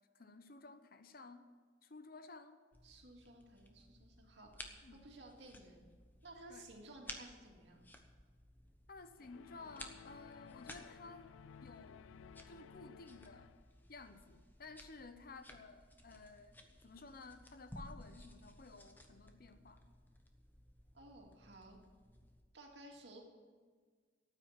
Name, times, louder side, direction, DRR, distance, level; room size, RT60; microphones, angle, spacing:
voice 1, 0.0-1.5 1.8-2.6 4.8-5.0 6.5-6.7 8.9-11.3 11.6-12.1 12.5-13.5 13.9-19.8, left 3 dB, 50° left, 9 dB, 0.8 m, -55 dB
sound 1, 2.7-22.4, left 1 dB, 10° left, 1.0 m, -57 dB
voice 2, 2.8-5.9 6.2-7.8 20.9-21.8 22.5-23.2, right 1 dB, 65° right, 0 dB, 2.5 m, -56 dB
sound 2, 9.2-13.8, left 7 dB, 85° left, 0.3 m, -57 dB
13.5 x 9.1 x 7.5 m, 1.5 s
head